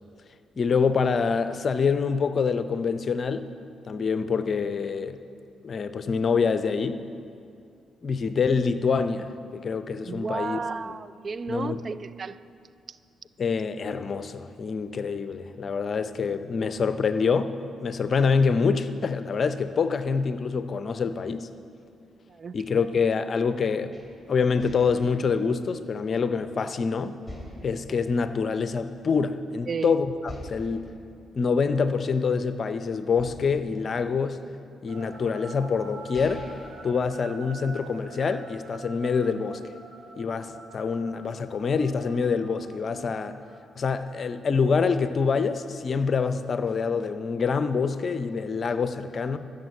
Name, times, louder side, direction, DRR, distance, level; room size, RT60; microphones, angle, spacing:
voice 1, 0.6-3.5 3.8-5.2 5.6-7.1 8.0-10.6 11.5-11.8 13.4-21.5 22.5-24.0 24.3-27.2 27.6-30.9 31.3-34.4 34.8-36.5 36.8-39.6 40.2-43.4 43.8-49.4, left 5 dB, 50° left, 11 dB, 0.6 m, -26 dB
voice 2, 10.0-12.4 12.9-13.0 22.3-22.6 29.7-29.9, right 5 dB, 50° right, 16 dB, 0.4 m, -33 dB
sound 1, 23.9-26.7 27.3-29.2 29.5-29.6 30.2-32.6 33.2-34.8 35.5-35.6 35.9-37.8, equal, 5° right, 3.2 m, -46 dB
sound 2, 34.9-44.3, right 3 dB, 80° right, 1.7 m, -46 dB
13.5 x 6.6 x 8.2 m, 2.5 s
hypercardioid pair, 50°, 0 cm